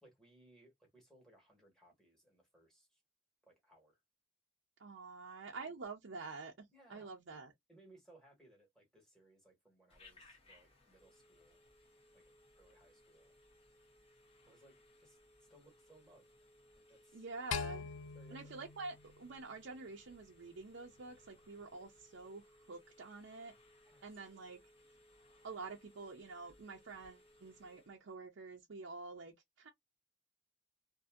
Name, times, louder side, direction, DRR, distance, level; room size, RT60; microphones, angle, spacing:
voice 1, 0.0-3.0 3.5-4.0 5.5-5.7 6.7-7.1 7.7-11.6 12.1-13.3 14.5-15.2 15.5-16.3 16.9-17.2 18.1-18.4 23.8-24.1, right 1 dB, 5° left, 1.4 m, -65 dB
voice 2, 4.8-6.5 6.9-7.5 17.1-17.9 18.3-23.5 24.0-24.6 25.4-29.7, right 3 dB, 65° right, 0.6 m, -48 dB
Telephone, 9.9-28.0, left 1 dB, 30° left, 1.0 m, -65 dB
sound 1, 17.5-19.9, left 6 dB, 75° left, 0.4 m, -43 dB
2.6 x 2.6 x 2.4 m
head